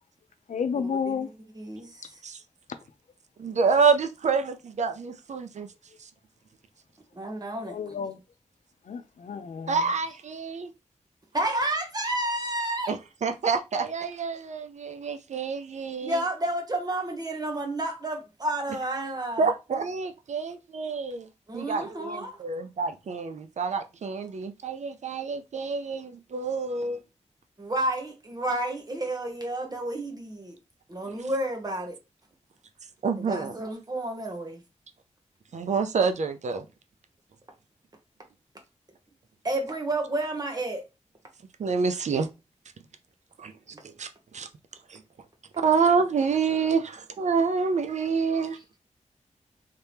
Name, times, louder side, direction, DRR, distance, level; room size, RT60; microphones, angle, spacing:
voice 1, 0.5-1.3 7.6-8.2 8.8-9.9, left 6 dB, 80° left, 0.5 m, -31 dB
voice 2, 1.5-2.2 7.1-7.8 11.3-13.0 16.0-19.5 21.5-22.4 27.6-30.6 30.9-32.0 33.2-34.6 39.4-40.8, right 1 dB, 30° right, 1.1 m, -30 dB
voice 3, 3.4-5.7 9.7-10.7 12.9-16.2 19.4-21.3 21.5-27.0 33.0-33.6 35.5-36.6 41.6-42.3 43.4-43.5 44.0-44.1 44.3-44.5 44.9-45.0 45.6-48.6, right 5 dB, 70° right, 0.5 m, -27 dB
3.3 x 2.8 x 3.4 m
wide cardioid pair, 100°, 12 cm